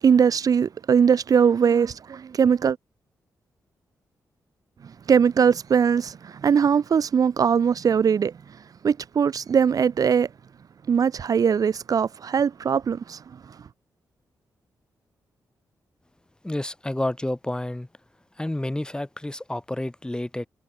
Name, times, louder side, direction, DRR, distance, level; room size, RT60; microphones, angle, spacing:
voice 1, 0.0-2.8 4.8-8.3 8.8-10.3 10.9-13.2, right 7 dB, 60° right, 1.0 m, -21 dB
voice 2, 16.4-17.9 18.4-20.5, left 1 dB, 10° left, 3.3 m, -29 dB
cardioid pair, 75°, 7 cm